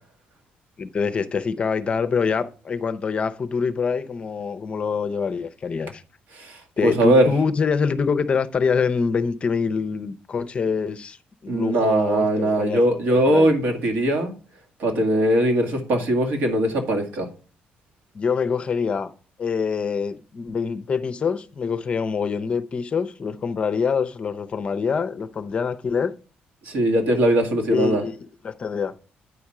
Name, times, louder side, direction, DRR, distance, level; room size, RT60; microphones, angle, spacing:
voice 1, 0.8-6.0 6.8-13.5 18.1-19.1 19.4-26.1 27.7-28.1 28.4-28.9, left 5 dB, 35° left, 0.5 m, -25 dB
voice 2, 6.3-7.3 11.5-14.3 14.8-17.3 26.6-28.0, right 1 dB, 75° right, 2.0 m, -20 dB
9.5 x 4.3 x 4.8 m
cardioid pair, 130°, 3 cm